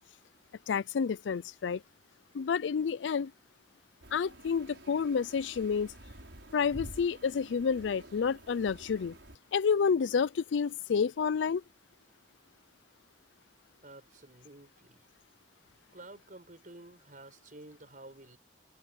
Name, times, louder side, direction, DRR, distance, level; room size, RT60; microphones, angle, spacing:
voice 1, 0.7-1.8 2.3-3.3 4.1-5.9 6.5-9.2 9.5-11.6, left 6 dB, 90° left, 0.4 m, -29 dB
sound 1, 4.0-9.3, right 1 dB, 80° right, 6.3 m, -50 dB
voice 2, 13.8-15.0 15.9-18.4, right 2 dB, 45° right, 5.6 m, -51 dB
open air
head